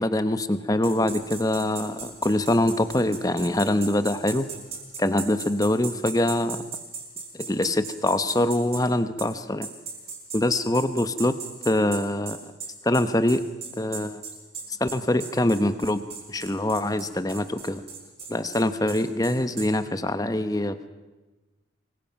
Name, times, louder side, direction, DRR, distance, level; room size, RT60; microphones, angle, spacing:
voice 1, 0.0-4.5 5.0-6.6 7.3-9.7 10.3-11.3 11.6-12.5 12.8-13.4 13.8-14.2 14.8-16.0 16.3-17.8 18.3-20.9, left 1 dB, 20° left, 11 dB, 0.9 m, -24 dB
sound 1, 0.8-8.8 9.2-9.3 9.6-19.7, right 5 dB, 30° right, 4.8 m, -37 dB
26.5 x 21.5 x 5.9 m, 1.2 s
head